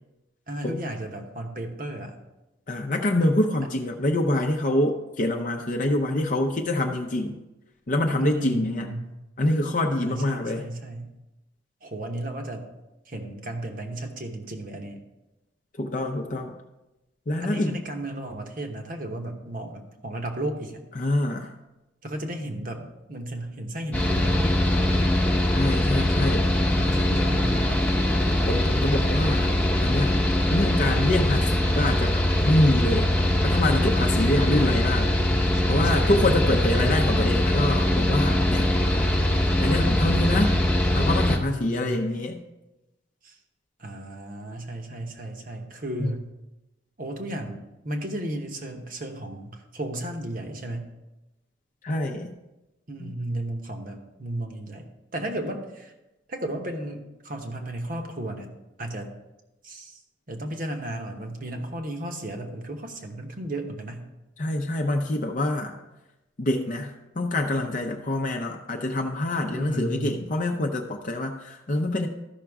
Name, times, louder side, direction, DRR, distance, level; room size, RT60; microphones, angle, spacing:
voice 1, 0.5-2.2 8.2-9.1 10.0-11.1 11.8-12.7 13.1-15.0 17.4-20.8 22.0-25.1 26.4-28.1 34.5-37.0 41.3-42.2 43.2-43.4 43.8-46.2 47.0-50.9 52.9-55.9 56.3-58.5 58.8-59.1 59.6-60.0 60.3-64.1 69.5-70.3, right 1 dB, 45° right, 4 dB, 1.1 m, -34 dB
voice 2, 2.7-7.4 7.9-8.9 9.4-10.7 15.8-16.5 17.3-17.8 21.0-21.5 25.5-26.5 28.5-29.5 29.8-30.2 30.5-33.1 33.4-35.1 35.7-38.7 39.6-40.5 40.9-42.4 46.0-46.2 51.8-52.3 53.0-53.1 64.4-65.8 66.4-72.1, left 1 dB, 40° left, 2 dB, 0.6 m, -25 dB
Mechanical fan, 23.9-41.4, left 1 dB, 10° left, 0.8 m, -22 dB
13.5 x 5.9 x 3.5 m, 1.0 s
head